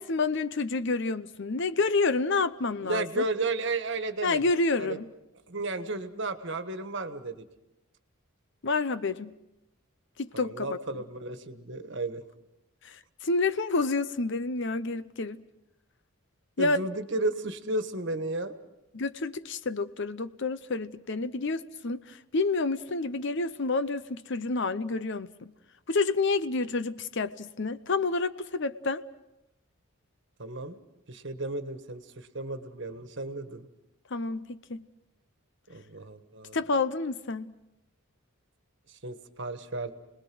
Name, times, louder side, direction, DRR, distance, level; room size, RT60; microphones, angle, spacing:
voice 1, 0.0-3.2 4.2-5.1 8.6-9.3 10.2-10.8 12.8-15.4 16.6-16.8 18.9-25.5 25.9-29.0 34.1-34.9 36.5-37.5, left 3 dB, 55° left, 13 dB, 0.7 m, -29 dB
voice 2, 2.8-4.4 4.8-5.0 5.5-7.4 10.3-12.2 16.6-18.6 30.4-30.8 31.1-33.7 35.7-36.6 38.9-39.9, right 2 dB, 55° right, 9 dB, 1.5 m, -33 dB
29.5 x 20.0 x 6.2 m, 0.91 s
head